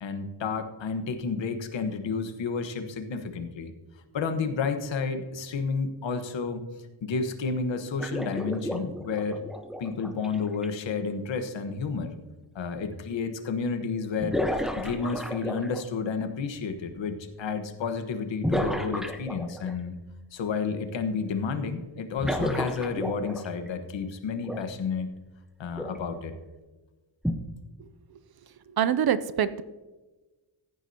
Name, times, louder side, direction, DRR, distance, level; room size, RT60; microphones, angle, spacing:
voice 1, 0.0-3.7 4.1-6.6 7.0-9.4 9.8-12.1 12.5-14.4 14.8-19.9 20.3-25.1 25.6-26.3, left 5 dB, 75° left, 8 dB, 1.3 m, -31 dB
sound 1, 8.0-10.7 12.6-12.7 14.2-16.0 18.4-19.7 22.2-23.7 24.4-24.6 25.8-26.0 27.2-27.3, equal, ahead, 0.6 m, -31 dB
voice 2, 28.7-29.6, right 9 dB, 55° right, 14 dB, 0.5 m, -25 dB
15.0 x 9.4 x 2.8 m, 1.2 s
wide cardioid pair, 175°, 45 cm